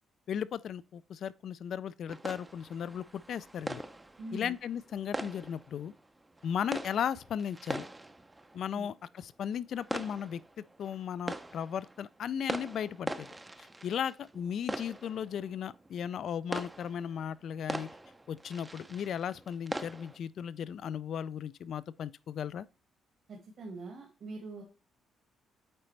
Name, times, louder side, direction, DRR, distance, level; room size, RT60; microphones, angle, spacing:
voice 1, 0.3-3.8 4.3-5.9 6.4-7.9 8.5-10.4 10.8-13.3 13.6-17.9 18.3-22.7, left 8 dB, 65° left, 0.3 m, -36 dB
sound 1, 2.1-20.2, right 2 dB, 15° right, 0.5 m, -42 dB
voice 2, 4.2-4.5 8.7-8.8 23.3-24.6, right 2 dB, 60° right, 1.6 m, -43 dB
8.7 x 4.0 x 3.2 m
cardioid pair, 90°, 0 cm